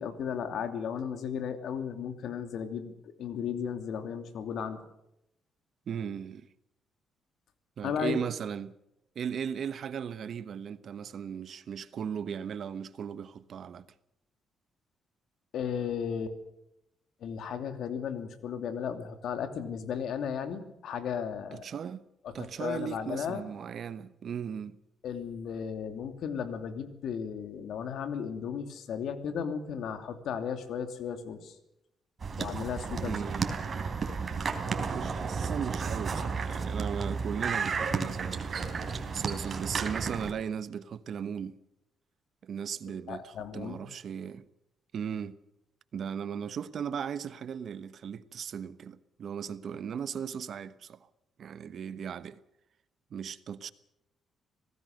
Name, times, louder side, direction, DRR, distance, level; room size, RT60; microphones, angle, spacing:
voice 1, 0.0-4.8 7.8-8.2 15.5-16.4 17.2-21.7 22.2-23.4 25.0-31.5 32.4-33.2 42.9-43.9, left 7 dB, 75° left, 2.8 m, -35 dB
voice 2, 5.9-6.5 7.8-8.7 9.1-13.9 21.5-22.0 22.3-24.8 33.0-33.6 34.9-38.7 39.1-41.6 42.4-44.5 44.9-45.3 45.9-51.1 51.4-52.4 53.1-53.7, right 7 dB, 60° right, 1.1 m, -37 dB
sound 1, 32.2-40.3, right 5 dB, 40° right, 3.7 m, -33 dB
26.0 x 18.0 x 6.6 m
cardioid pair, 90°, 0 cm